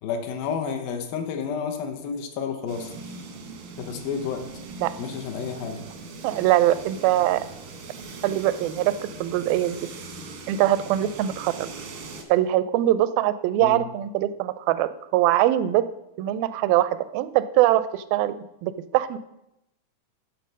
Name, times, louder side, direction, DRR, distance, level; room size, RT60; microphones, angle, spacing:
voice 1, 0.0-2.9 3.8-4.4 5.0-5.8 13.6-13.8, left 6 dB, 80° left, 5 dB, 2.8 m, -30 dB
sound 1, 2.7-12.2, right 3 dB, 70° right, 1.2 m, -40 dB
voice 2, 6.2-7.4 8.2-8.9 9.2-9.8 10.5-11.7 12.3-15.9 16.2-19.2, right 14 dB, 85° right, 14 dB, 2.3 m, -22 dB
11.5 x 4.4 x 6.2 m, 0.86 s
omnidirectional pair, 4.1 m